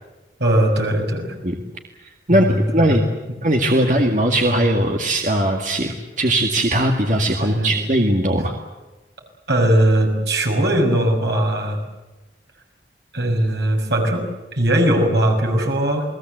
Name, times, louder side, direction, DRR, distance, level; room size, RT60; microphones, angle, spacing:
voice 1, 0.4-1.3 2.3-3.0 3.8-4.0 7.4-7.8 9.5-11.8 13.1-14.3 14.5-16.0, right 1 dB, 80° right, 2 dB, 6.4 m, -19 dB
voice 2, 2.3-3.0 3.4-8.5, right 1 dB, 45° right, 2 dB, 2.1 m, -19 dB
29.0 x 20.0 x 8.0 m, 1.1 s
head